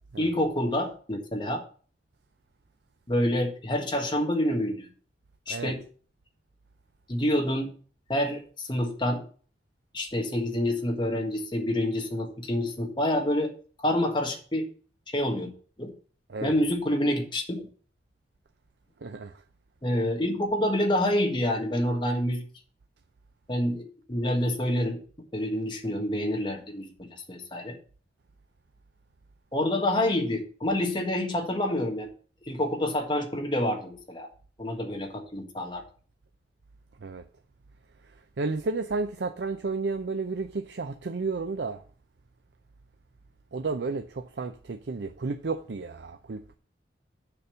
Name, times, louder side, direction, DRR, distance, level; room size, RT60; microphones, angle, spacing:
voice 1, 0.2-1.6 3.1-4.9 5.5-5.8 7.1-7.7 8.1-9.2 9.9-13.5 13.8-14.7 15.1-15.5 15.8-15.9 16.4-17.7 19.8-22.4 23.5-23.8 24.1-25.0 25.3-27.8 29.5-32.1 32.5-34.3 34.6-35.8, left 1 dB, 25° left, 1.4 m, -27 dB
voice 2, 19.0-19.3 37.0-37.2 38.4-41.8 43.5-46.6, right 3 dB, 70° right, 0.5 m, -32 dB
6.9 x 5.2 x 6.8 m
head